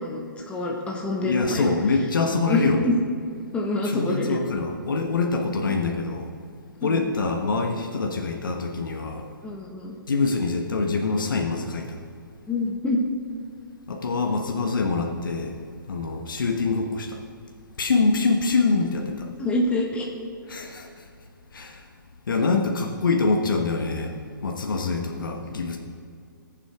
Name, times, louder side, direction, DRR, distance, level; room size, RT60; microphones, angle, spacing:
voice 1, 0.0-1.7 2.5-2.9 3.5-4.4 6.8-7.1 9.4-9.9 12.5-13.1 19.4-20.1, left 2 dB, 10° left, -2 dB, 1.5 m, -26 dB
voice 2, 1.2-2.9 3.8-6.3 6.8-9.3 10.1-12.0 13.9-15.6 15.9-17.2 17.8-19.3 20.5-21.0 21.5-21.8 22.3-24.1 24.4-25.8, left 4 dB, 70° left, 2 dB, 1.3 m, -25 dB
20.0 x 7.6 x 3.6 m, 2.4 s
figure-of-eight pair, 130°, 11 cm